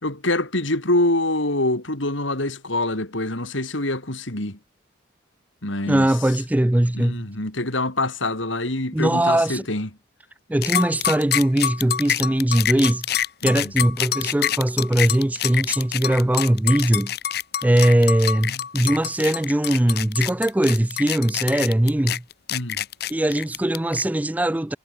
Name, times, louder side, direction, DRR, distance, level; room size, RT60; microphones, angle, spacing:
voice 1, 0.0-4.6 5.6-6.1 6.9-9.9 13.4-13.7 18.5-18.6 22.5-22.8, left 2 dB, 70° left, 4.3 m, -25 dB
voice 2, 5.9-7.3 8.9-9.6 10.5-17.1 17.6-22.2 23.1-24.8, right 1 dB, 10° right, 0.3 m, -20 dB
sound 1, 10.6-24.0, left 10 dB, 50° left, 0.8 m, -26 dB
head